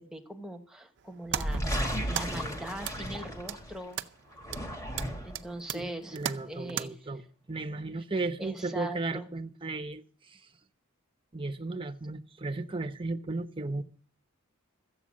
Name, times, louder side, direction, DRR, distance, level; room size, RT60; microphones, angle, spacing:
voice 1, 0.0-1.6 2.1-4.0 5.2-6.2 6.5-6.9 8.4-9.3, right 1 dB, 5° right, 1.3 m, -40 dB
sound 1, 1.0-6.9, right 9 dB, 60° right, 0.6 m, -39 dB
titleflight-paint-splat-spill, 1.3-3.8 4.3-5.5, equal, 15° left, 2.1 m, -34 dB
voice 2, 5.7-7.2 7.5-10.5 11.3-13.8, right 3 dB, 25° right, 0.8 m, -35 dB
14.0 x 8.1 x 7.5 m
head